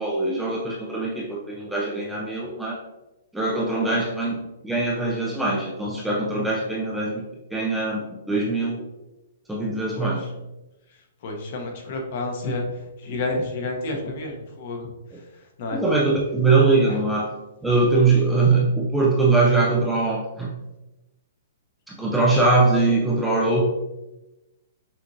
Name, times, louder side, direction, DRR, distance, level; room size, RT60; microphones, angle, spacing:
voice 1, 0.0-2.8 3.3-4.4 4.6-7.2 7.5-8.8 9.5-10.3 15.1-15.2 15.7-17.3 17.6-20.5 21.9-23.6, right 3 dB, ahead, -4 dB, 0.3 m, -22 dB
voice 2, 11.2-12.7 13.0-14.9 15.6-15.8 16.9-17.0, left 2 dB, 40° left, 2 dB, 0.8 m, -30 dB
5.6 x 2.9 x 2.6 m, 1.0 s
hypercardioid pair, 175°, 0 cm